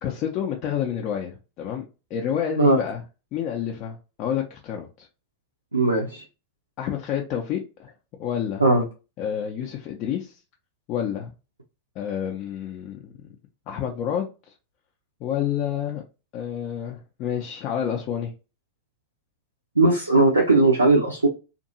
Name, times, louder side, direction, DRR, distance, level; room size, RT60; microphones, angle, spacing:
voice 1, 0.0-1.8 2.1-3.0 3.3-5.1 6.8-7.9 8.2-8.6 9.2-10.4 10.9-11.3 12.0-13.3 13.7-14.5 15.2-16.0 16.3-18.3, left 9 dB, 40° left, 0.4 m, -29 dB
voice 2, 5.7-6.2 8.6-8.8 19.8-21.3, right 2 dB, 80° right, 0.5 m, -18 dB
2.6 x 2.5 x 2.7 m
figure-of-eight pair, 90°, 0 cm